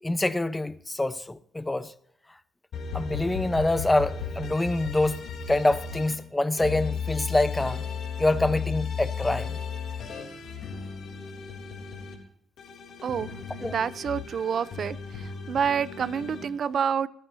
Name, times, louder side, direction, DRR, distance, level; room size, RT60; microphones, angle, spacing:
voice 1, 0.0-1.9 2.9-7.8 8.2-9.6 13.6-13.8, left 2 dB, 15° left, 0.9 m, -26 dB
sound 1, 2.7-6.1 6.6-12.1 12.6-16.4, left 6 dB, 65° left, 3.4 m, -35 dB
voice 2, 13.6-15.0 15.5-17.1, right 7 dB, 55° right, 0.7 m, -27 dB
26.5 x 10.5 x 2.8 m
cardioid pair, 90°, 0 cm